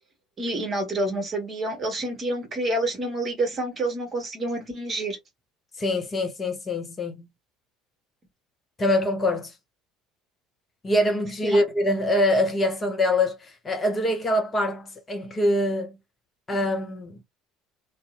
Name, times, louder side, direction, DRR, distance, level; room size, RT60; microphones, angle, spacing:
voice 1, 0.4-5.2 11.4-11.6, right 1 dB, 35° right, 1.1 m, -28 dB
voice 2, 5.8-7.3 8.8-9.5 10.8-16.0 16.5-17.2, left 1 dB, 25° left, 0.6 m, -24 dB
2.6 x 2.0 x 2.3 m
figure-of-eight pair, 65°, 0 cm